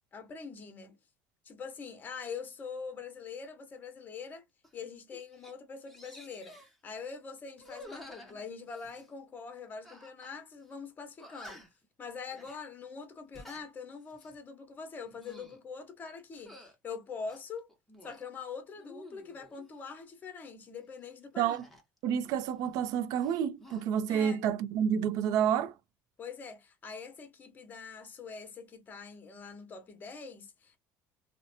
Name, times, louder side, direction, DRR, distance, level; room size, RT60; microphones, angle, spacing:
voice 1, 0.1-1.0 1.4-4.4 4.7-6.6 6.8-11.6 12.0-17.7 18.0-21.6 24.1-24.4 26.2-30.8, left 5 dB, 30° left, 0.9 m, -44 dB
sound 1, 4.6-4.8 5.1-5.5 5.9-6.8 7.6-9.1 9.8-10.4 10.6-10.7 11.2-11.8 12.3-12.6 13.2-13.7 14.1-14.4 15.0-15.6 16.3-16.7 17.3-18.2 18.7-19.7 21.5-22.9 23.2-23.8, left 1 dB, ahead, 0.9 m, -52 dB
voice 2, 22.0-25.7, right 8 dB, 70° right, 0.5 m, -29 dB
2.7 x 2.1 x 2.7 m
cardioid pair, 125°, 6 cm